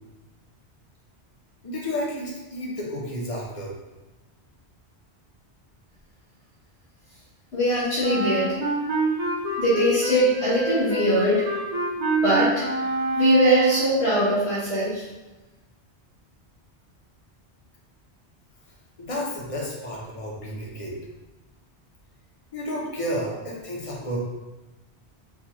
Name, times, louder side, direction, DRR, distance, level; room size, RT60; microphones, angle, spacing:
voice 1, 1.6-3.7 19.0-21.0 22.5-24.2, equal, 35° left, -3 dB, 0.7 m, -31 dB
voice 2, 7.5-8.6 9.6-11.4 12.2-12.6 13.1-15.0, right 1 dB, 85° left, -11 dB, 1.5 m, -21 dB
Wind instrument woodwind instrument, 8.0-14.0, equal, 40° right, 0.9 m, -26 dB
3.9 x 2.3 x 2.9 m, 1.1 s
omnidirectional pair, 1.1 m